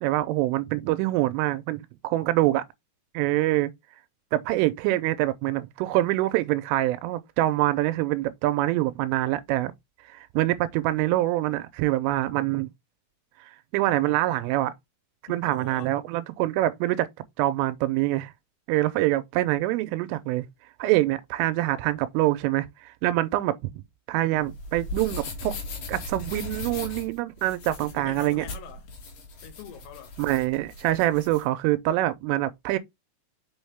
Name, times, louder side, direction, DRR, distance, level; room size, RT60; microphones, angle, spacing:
voice 1, 0.0-2.6 3.1-3.7 4.3-9.7 10.1-12.7 13.4-14.7 15.3-17.1 17.4-18.3 18.7-20.5 20.8-23.8 24.1-25.6 25.9-28.5 30.2-32.8, right 16 dB, 85° right, 3.1 m, -25 dB
voice 2, 15.3-15.9 27.8-28.9 29.4-30.2, left 11 dB, 80° left, 3.8 m, -44 dB
sound 1, 24.4-31.4, left 2 dB, 55° left, 3.2 m, -38 dB
6.3 x 5.9 x 3.4 m
omnidirectional pair, 5.9 m